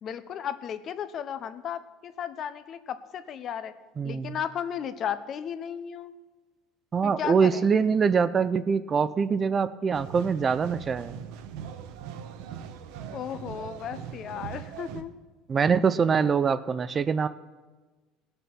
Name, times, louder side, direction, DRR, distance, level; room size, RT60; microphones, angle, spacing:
voice 1, 0.0-3.7 4.0-6.1 7.0-7.7 13.1-15.1, left 8 dB, 45° left, 12 dB, 0.8 m, -34 dB
voice 2, 4.0-4.4 6.9-11.2 15.5-17.3, right 6 dB, 30° right, 14 dB, 0.5 m, -24 dB
sound 1, 9.9-15.0, right 8 dB, 75° right, 0.9 m, -40 dB
18.0 x 6.8 x 6.0 m, 1.3 s
supercardioid pair, 120°, 0 cm